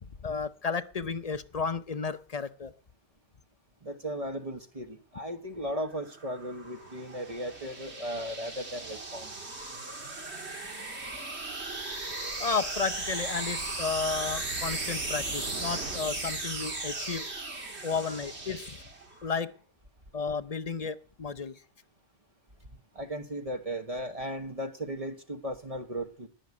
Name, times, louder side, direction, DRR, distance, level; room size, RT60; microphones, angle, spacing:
voice 1, 0.0-2.7 12.4-17.3 17.8-18.8 19.2-19.5 20.1-21.6, left 5 dB, 40° left, 12 dB, 0.7 m, -33 dB
voice 2, 3.8-9.3 22.9-26.3, equal, 30° right, 7 dB, 1.2 m, -36 dB
sound 1, 5.8-19.3, right 2 dB, 65° right, 2.7 m, -37 dB
18.0 x 6.3 x 9.6 m, 0.43 s
omnidirectional pair, 1.2 m